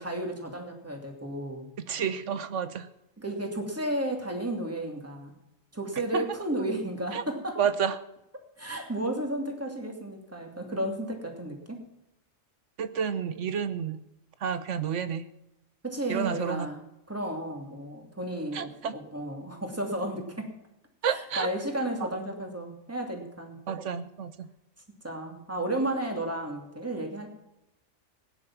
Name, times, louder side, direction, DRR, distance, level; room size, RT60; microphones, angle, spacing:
voice 1, 0.0-1.7 3.2-5.3 5.7-7.6 8.6-11.8 15.8-20.5 21.1-23.6 25.0-27.3, right 1 dB, 10° right, 2 dB, 2.6 m, -33 dB
voice 2, 1.9-2.9 6.1-6.2 7.1-7.2 7.6-8.0 12.8-14.0 14.4-15.2 16.1-16.7 18.5-18.9 21.0-21.5 23.7-24.3, right 7 dB, 65° right, 13 dB, 1.2 m, -30 dB
17.5 x 10.0 x 5.9 m, 0.87 s
omnidirectional pair, 1.4 m